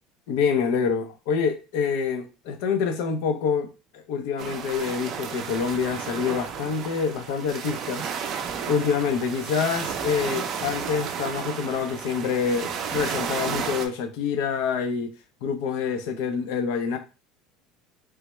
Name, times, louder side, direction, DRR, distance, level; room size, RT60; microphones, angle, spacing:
voice 1, 0.3-3.7 3.9-8.1 8.7-15.1 15.4-17.0, left 6 dB, 70° left, 0.5 m, -26 dB
sound 1, 4.4-13.9, right 7 dB, 40° right, 0.4 m, -32 dB
3.3 x 2.1 x 3.0 m
cardioid pair, 160°, 0 cm